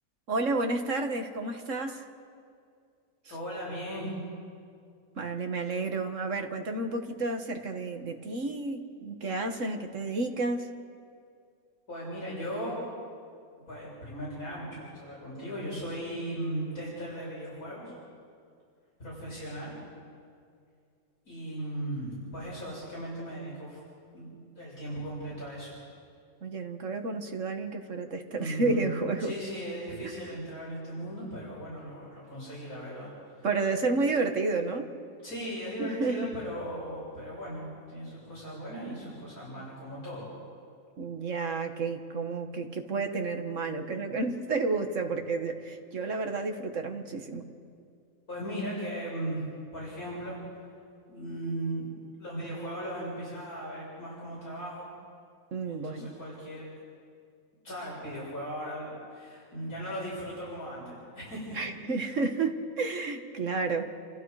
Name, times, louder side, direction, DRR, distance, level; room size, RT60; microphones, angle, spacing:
voice 1, 0.3-2.1 5.2-10.7 16.1-16.2 26.4-29.3 33.4-34.9 35.8-36.3 41.0-47.4 55.5-56.1 61.5-63.9, right 3 dB, 60° right, 5 dB, 1.9 m, -31 dB
voice 2, 3.3-4.1 11.9-12.8 13.7-17.9 19.0-19.8 21.3-23.8 24.1-24.3 24.6-25.8 28.4-33.5 35.2-40.3 48.3-49.4 49.7-50.4 51.1-51.9 52.2-54.9 55.7-56.7 57.6-61.7, right 1 dB, 80° left, -7 dB, 7.5 m, -37 dB
29.5 x 27.5 x 4.9 m, 2.3 s
omnidirectional pair, 1.5 m